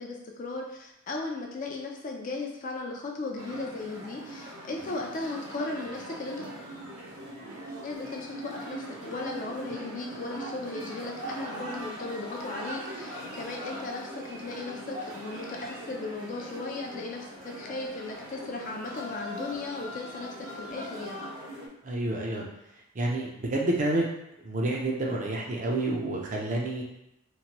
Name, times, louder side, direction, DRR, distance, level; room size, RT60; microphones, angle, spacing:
voice 1, 0.0-6.5 7.8-21.3, left 3 dB, 40° left, 1 dB, 0.3 m, -36 dB
sound 1, 3.4-21.7, right 1 dB, 90° right, 0.6 m, -41 dB
voice 2, 21.8-22.5 22.9-24.0 24.4-26.8, right 2 dB, 35° right, -1 dB, 0.4 m, -29 dB
2.9 x 2.1 x 2.8 m, 0.85 s
head